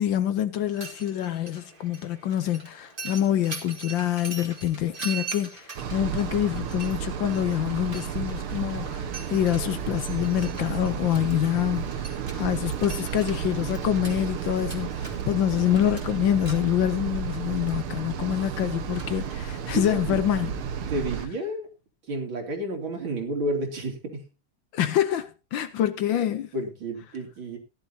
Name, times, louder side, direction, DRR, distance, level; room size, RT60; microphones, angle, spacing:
voice 1, 0.0-20.5 24.7-26.5, left 11 dB, 70° left, 1.4 m, -26 dB
Mechanisms, 0.6-20.2, right 4 dB, 25° right, 2.0 m, -43 dB
sound 1, 5.8-21.3, right 8 dB, 80° right, 2.0 m, -32 dB
voice 2, 19.4-20.2 20.9-21.7 22.0-24.3 26.5-27.6, right 1 dB, 65° right, 3.6 m, -31 dB
16.5 x 11.5 x 2.8 m
omnidirectional pair, 2.4 m